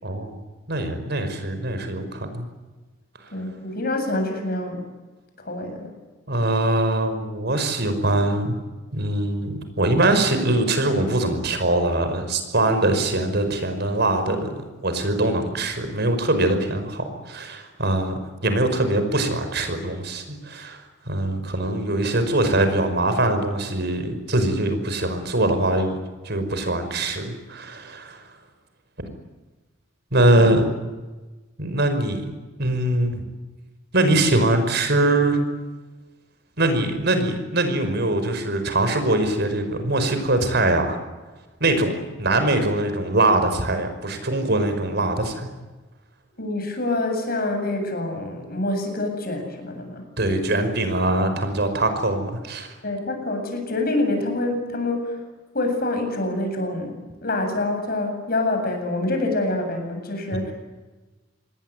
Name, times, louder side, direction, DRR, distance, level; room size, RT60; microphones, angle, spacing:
voice 1, 0.0-0.4 0.7-2.5 6.3-8.6 8.9-26.0 26.2-28.2 30.1-30.7 31.6-32.2 32.6-33.2 33.9-35.4 36.6-41.0 41.6-41.9 42.2-45.5 50.2-52.7 60.3-60.5, right 2 dB, 60° right, 8 dB, 5.3 m, -22 dB
voice 2, 3.3-4.9 5.4-5.9 46.4-50.0 52.8-55.3 55.5-60.5, left 2 dB, 50° left, 5 dB, 7.9 m, -26 dB
27.5 x 21.5 x 9.6 m, 1.2 s
head